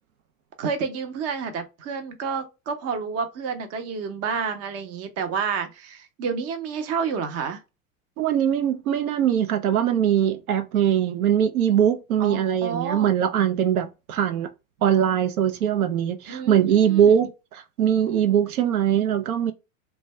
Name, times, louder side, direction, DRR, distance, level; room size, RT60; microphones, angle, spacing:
voice 1, 0.6-7.6 12.2-13.1 16.3-17.1, right 6 dB, 35° right, 0.7 m, -29 dB
voice 2, 8.2-14.5 14.8-19.5, right 9 dB, 85° right, 0.6 m, -21 dB
2.5 x 2.2 x 3.1 m
hypercardioid pair, 100°, 42 cm